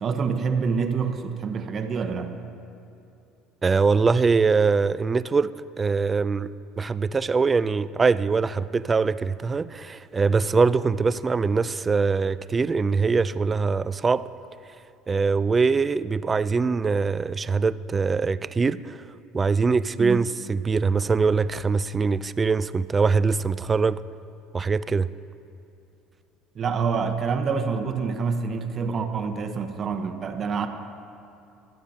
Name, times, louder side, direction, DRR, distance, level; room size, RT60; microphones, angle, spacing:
voice 1, 0.0-2.3 20.0-20.2 26.5-30.7, right 5 dB, 40° right, 6 dB, 1.0 m, -27 dB
voice 2, 3.6-5.5 5.8-6.5 6.8-14.3 15.1-19.0 19.3-24.0 24.5-25.1, right 4 dB, 25° right, 16 dB, 0.4 m, -23 dB
24.0 x 9.1 x 2.8 m, 2.7 s
hypercardioid pair, 70°, 0 cm